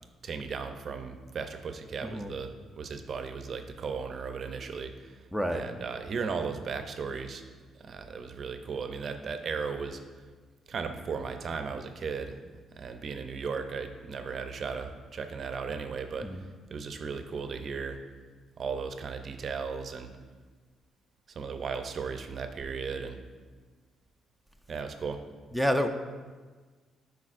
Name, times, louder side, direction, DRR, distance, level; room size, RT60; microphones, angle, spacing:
voice 1, 0.2-5.2 5.5-7.4 7.8-10.2 10.7-12.4 12.8-16.4 16.7-18.0 18.6-20.1 21.3-23.2 24.7-25.2, right 5 dB, 55° right, 7 dB, 0.5 m, -36 dB
voice 2, 2.0-2.3 5.3-5.6 16.2-16.4 25.5-25.9, equal, 5° left, 6 dB, 0.4 m, -28 dB
9.7 x 4.6 x 2.5 m, 1.4 s
cardioid pair, 90°, 0 cm